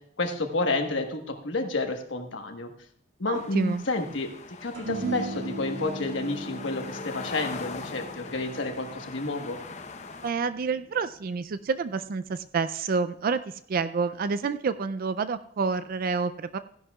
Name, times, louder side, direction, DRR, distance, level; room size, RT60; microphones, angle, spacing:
voice 1, 0.2-2.7 3.2-4.3 4.6-9.6, left 3 dB, 70° left, 4 dB, 1.3 m, -30 dB
voice 2, 3.2-3.8 10.2-16.6, right 5 dB, 50° right, 13 dB, 0.4 m, -28 dB
sound 1, 3.3-10.3, left 4 dB, 40° left, 0.8 m, -41 dB
sound 2, 4.7-11.3, right 3 dB, 65° right, 1.8 m, -38 dB
15.5 x 11.0 x 2.3 m, 0.67 s
head